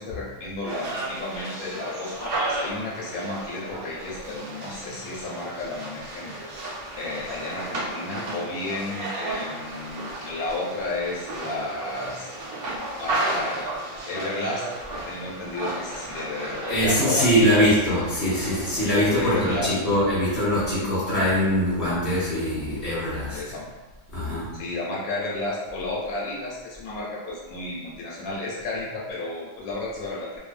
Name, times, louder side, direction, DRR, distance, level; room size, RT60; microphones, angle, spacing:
voice 1, 0.0-12.5 13.0-17.7 18.8-19.7 20.6-20.9 23.3-23.7 24.5-30.4, left 2 dB, 75° left, -5 dB, 1.0 m, -33 dB
sound 1, 0.7-19.6, right 2 dB, 85° right, 1.3 m, -34 dB
voice 2, 16.7-23.4 24.1-24.5, equal, 15° left, -10 dB, 1.0 m, -22 dB
2.6 x 2.3 x 2.4 m, 1.2 s
omnidirectional pair, 1.5 m